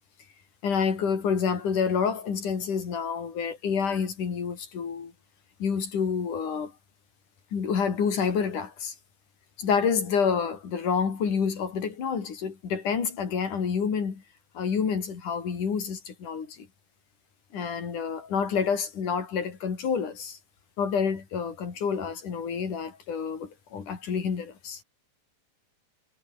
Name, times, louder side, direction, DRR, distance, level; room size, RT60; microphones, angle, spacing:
voice 1, 0.6-5.1 5.6-6.7 7.5-9.0 9.6-14.2 14.6-16.7 17.5-20.4 20.8-24.8, left 6 dB, 85° left, 5.2 m, -28 dB
omnidirectional pair, 3.5 m